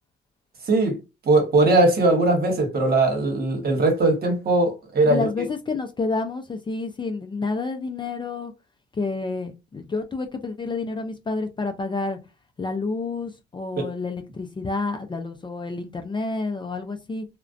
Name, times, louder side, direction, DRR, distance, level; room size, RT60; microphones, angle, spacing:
voice 1, 0.7-1.0 1.2-5.2 13.8-13.9, right 2 dB, 50° right, 1.1 m, -20 dB
voice 2, 5.1-8.5 8.9-12.2 12.6-17.3, left 3 dB, 25° left, 0.4 m, -29 dB
2.4 x 2.1 x 2.4 m
cardioid pair, 90°, 20 cm